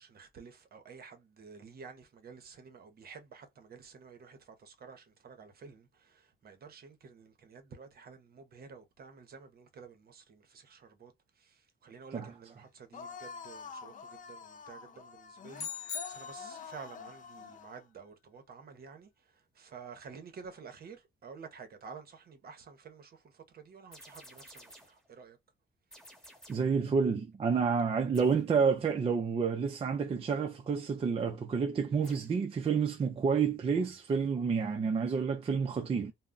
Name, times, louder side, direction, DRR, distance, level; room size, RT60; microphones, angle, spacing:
voice 1, 0.0-25.4, right 5 dB, 50° right, 0.7 m, -51 dB
sound 1, 12.9-17.8, left 6 dB, 40° left, 0.4 m, -47 dB
sound 2, 15.5-16.9, left 7 dB, 85° left, 0.6 m, -41 dB
sound 3, 23.9-25.1 25.9-26.8 28.1-28.5 32.0-32.4, equal, 5° left, 1.0 m, -54 dB
voice 2, 26.5-36.1, right 5 dB, 30° right, 0.4 m, -29 dB
2.2 x 2.0 x 3.7 m
cardioid pair, 90°, 20 cm